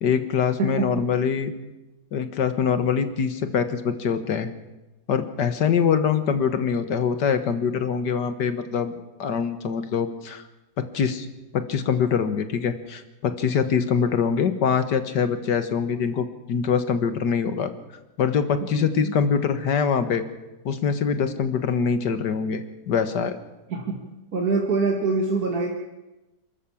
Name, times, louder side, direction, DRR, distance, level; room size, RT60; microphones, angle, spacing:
voice 1, 0.0-1.5 2.1-4.5 5.1-10.4 10.8-11.3 11.5-17.7 18.2-20.2 20.7-23.4, left 6 dB, 90° left, 10 dB, 2.0 m, -24 dB
voice 2, 0.6-0.9 18.7-19.1 21.2-21.4 23.7-24.0 24.3-25.7, right 3 dB, 60° right, 1 dB, 2.5 m, -25 dB
28.0 x 13.5 x 7.3 m, 1.0 s
omnidirectional pair, 1.8 m